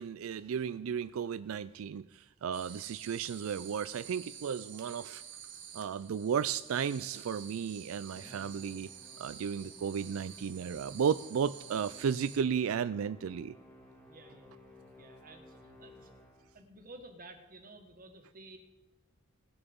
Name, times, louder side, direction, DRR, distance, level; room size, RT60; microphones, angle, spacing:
voice 1, 0.0-5.2 5.7-8.9 9.2-13.5, right 7 dB, 90° right, 15 dB, 0.4 m, -34 dB
sound 1, 2.5-12.4, right 8 dB, 65° right, 1.6 m, -50 dB
Musical instrument, 8.1-16.7, left 1 dB, 5° left, 3.1 m, -57 dB
voice 2, 14.1-14.5 15.0-16.1 16.5-18.6, right 2 dB, 45° right, 6 dB, 1.6 m, -53 dB
18.5 x 6.9 x 5.3 m, 1.0 s
head